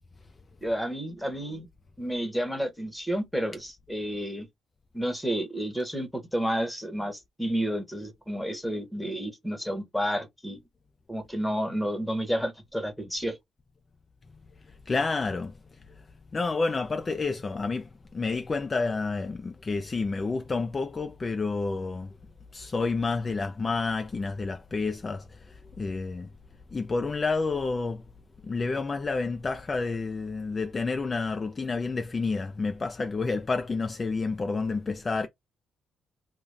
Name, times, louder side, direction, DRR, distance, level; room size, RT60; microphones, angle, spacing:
voice 1, 0.6-1.7 2.0-4.5 4.9-10.6 11.1-13.4, equal, ahead, 0.9 m, -30 dB
voice 2, 14.7-15.5 16.0-16.1 16.3-22.1 22.5-26.3 26.7-28.0 28.4-35.3, left 4 dB, 30° left, 0.3 m, -29 dB
2.3 x 2.2 x 3.2 m
cardioid pair, 90°, 0 cm